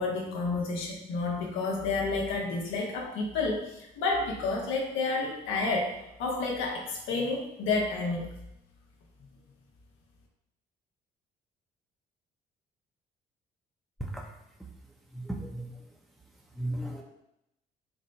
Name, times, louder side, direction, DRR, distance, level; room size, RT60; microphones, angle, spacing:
voice 1, 0.0-5.9 6.2-8.3, left 3 dB, 80° left, -1 dB, 1.0 m, -30 dB
voice 2, 15.1-15.7 16.6-17.0, right 1 dB, ahead, -1 dB, 0.8 m, -35 dB
4.4 x 2.1 x 4.0 m, 0.83 s
supercardioid pair, 65°, 20 cm